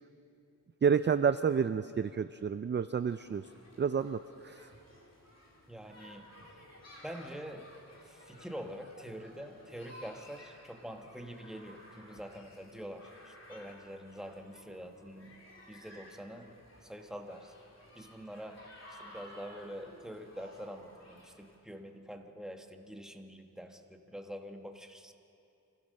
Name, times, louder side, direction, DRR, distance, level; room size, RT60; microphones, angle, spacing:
voice 1, 0.8-3.4 3.8-4.7, right 6 dB, 35° right, 12 dB, 0.4 m, -29 dB
sound 1, 3.0-21.6, left 1 dB, 45° left, 3.7 m, -55 dB
voice 2, 5.7-6.3 7.0-7.7 8.0-15.4 15.7-17.5 17.9-25.1, equal, ahead, 4 dB, 1.2 m, -46 dB
26.0 x 16.0 x 6.5 m, 2.7 s
wide cardioid pair, 130°, 34 cm